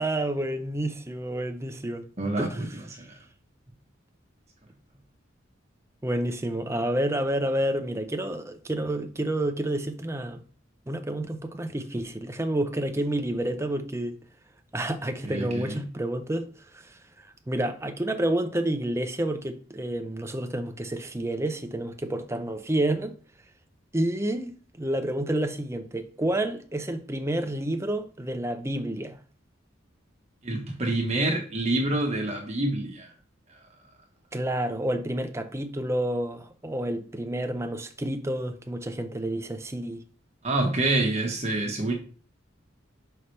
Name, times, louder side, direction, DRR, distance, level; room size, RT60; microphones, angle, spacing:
voice 1, 0.0-2.0 2.4-2.6 6.0-10.4 10.9-14.2 14.7-16.5 17.5-23.1 23.9-29.2 34.3-40.0, right 1 dB, 15° right, 0.7 m, -29 dB
voice 2, 2.2-2.8 15.2-15.9 30.4-33.1 40.4-41.9, right 2 dB, 35° right, 1.3 m, -27 dB
5.7 x 5.5 x 3.3 m
head